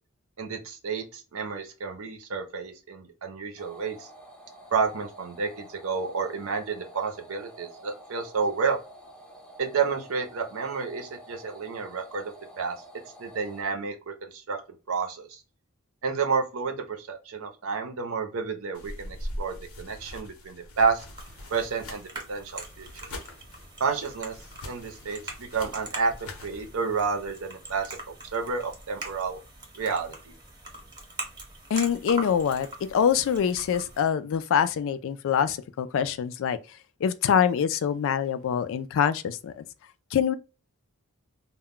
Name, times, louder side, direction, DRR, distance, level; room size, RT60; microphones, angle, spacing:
voice 1, 0.4-4.1 4.7-8.8 9.6-12.8 13.2-14.6 14.9-15.4 16.0-21.0 21.5-22.9 23.8-24.3 24.6-28.0 28.3-29.4 29.8-30.3, right 5 dB, 70° right, 0.7 m, -30 dB
sound 1, 3.6-13.6, right 1 dB, 5° left, 0.6 m, -49 dB
sound 2, 18.7-26.7, left 1 dB, 90° left, 0.8 m, -42 dB
sound 3, 21.1-34.0, right 2 dB, 20° right, 0.9 m, -42 dB
voice 2, 31.7-36.6 37.0-39.6 40.1-40.3, left 8 dB, 65° left, 0.3 m, -25 dB
2.2 x 2.1 x 3.6 m
head